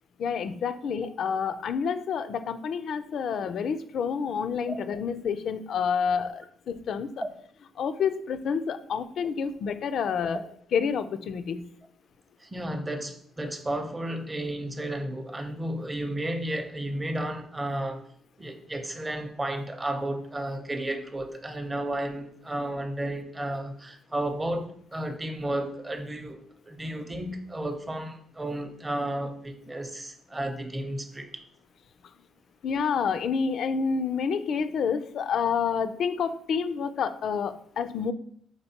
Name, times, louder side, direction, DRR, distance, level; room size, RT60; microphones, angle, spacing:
voice 1, 0.2-7.1 7.8-10.4 10.7-11.6 32.6-38.1, left 6 dB, 65° left, 11 dB, 0.3 m, -28 dB
voice 2, 12.4-18.0 18.4-31.4, right 1 dB, 20° right, 6 dB, 0.6 m, -33 dB
4.5 x 3.7 x 2.8 m, 0.62 s
cardioid pair, 90°, 0 cm